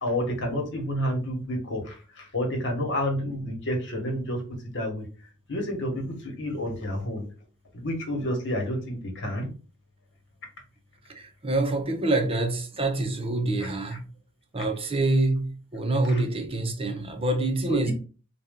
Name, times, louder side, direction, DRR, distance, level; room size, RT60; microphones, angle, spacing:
voice 1, 0.0-5.0 5.5-7.2 7.7-9.5 13.6-13.7 16.1-16.2 17.7-17.9, equal, 55° left, 1.3 m, -30 dB
voice 2, 11.1-14.0 14.5-17.9, right 2 dB, 25° right, 0.7 m, -26 dB
4.1 x 2.4 x 3.6 m
head